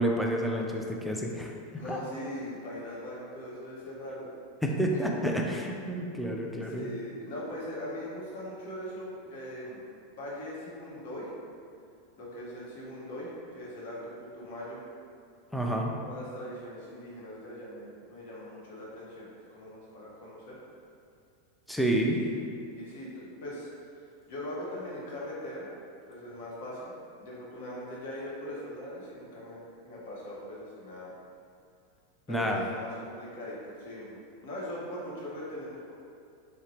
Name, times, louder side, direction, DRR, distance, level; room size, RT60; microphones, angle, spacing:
voice 1, 0.0-1.5 1.8-2.0 4.6-6.9 15.5-16.0 21.7-22.2 32.3-32.6, right 1 dB, ahead, -1 dB, 0.3 m, -29 dB
voice 2, 1.7-4.3 4.9-5.0 6.5-9.8 10.1-11.3 12.2-14.8 16.0-20.6 22.0-25.7 26.1-26.9 27.2-31.1 32.3-34.2 34.4-35.9, left 1 dB, 65° left, -6 dB, 0.8 m, -41 dB
2.7 x 2.1 x 3.0 m, 2.3 s
hypercardioid pair, 95°, 0 cm